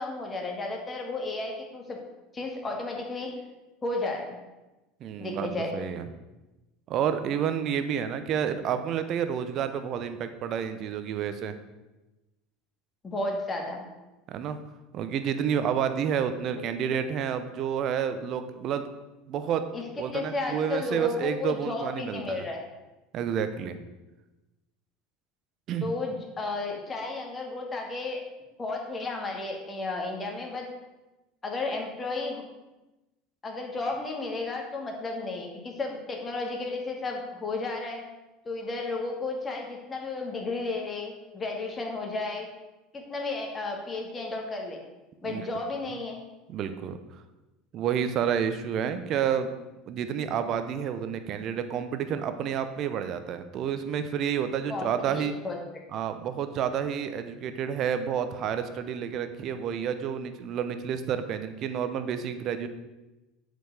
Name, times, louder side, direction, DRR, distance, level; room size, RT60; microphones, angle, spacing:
voice 1, 0.0-2.0 2.3-3.3 3.8-4.4 5.2-5.7 13.0-13.9 19.7-19.8 20.1-22.6 25.8-28.2 28.6-30.7 31.4-32.4 33.4-38.1 38.5-42.5 42.9-44.8 45.2-46.2 54.7-55.8, left 3 dB, 25° left, 1 dB, 2.3 m, -33 dB
voice 2, 5.0-6.1 6.9-11.6 14.3-14.6 14.9-18.8 19.3-19.6 20.0-22.5 23.1-23.8 25.7-25.9 45.2-45.4 46.5-47.0 47.7-49.5 49.9-55.4 55.9-62.7, right 8 dB, 50° right, 10 dB, 0.9 m, -30 dB
7.8 x 5.2 x 6.7 m, 1.1 s
hypercardioid pair, 75°, 0 cm